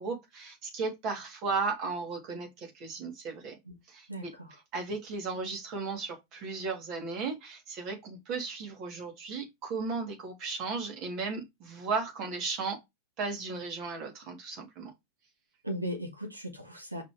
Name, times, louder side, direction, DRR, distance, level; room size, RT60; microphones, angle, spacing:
voice 1, 0.0-3.6 3.9-4.3 4.7-12.8 13.2-14.9, right 4 dB, 40° right, 2.9 m, -35 dB
voice 2, 4.1-4.6 15.6-17.0, equal, 85° right, 1.6 m, -37 dB
5.9 x 5.7 x 3.3 m
figure-of-eight pair, 90°, 0 cm